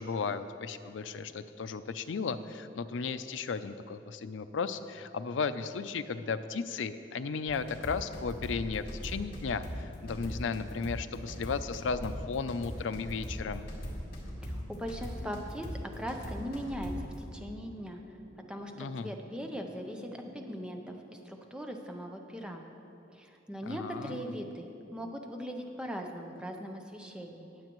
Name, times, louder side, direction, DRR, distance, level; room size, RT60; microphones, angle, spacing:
voice 1, 0.0-13.7 18.8-19.1 23.7-24.2, left 5 dB, 90° left, 11 dB, 0.4 m, -35 dB
sound 1, 7.5-17.2, equal, 55° left, 2.0 m, -40 dB
sound 2, 13.8-21.0, equal, 60° right, 1.4 m, -55 dB
voice 2, 14.4-15.7 16.0-18.2 18.5-22.6 23.1-27.5, equal, 5° right, 3 dB, 0.7 m, -40 dB
19.5 x 7.4 x 3.0 m, 2.9 s
head